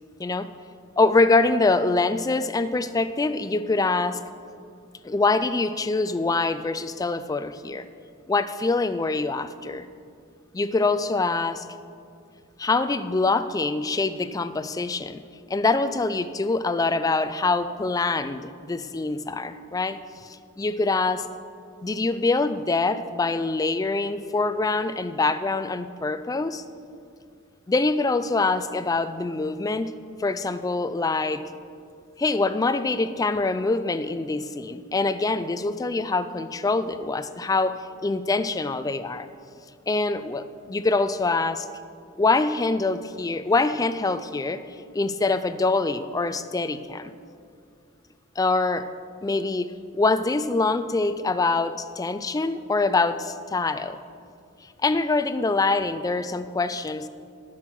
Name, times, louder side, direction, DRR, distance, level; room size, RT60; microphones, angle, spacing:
voice 1, 1.0-4.2 5.0-7.9 8.3-9.9 10.5-11.6 12.6-15.2 15.5-21.3 21.8-26.6 27.7-29.9 30.2-31.5 32.2-37.8 38.0-39.3 39.9-41.7 42.2-44.6 44.9-47.1 48.4-48.9 49.2-54.0 54.8-57.1, left 3 dB, 15° left, 13 dB, 0.3 m, -24 dB
12.5 x 6.3 x 6.0 m, 2.4 s
head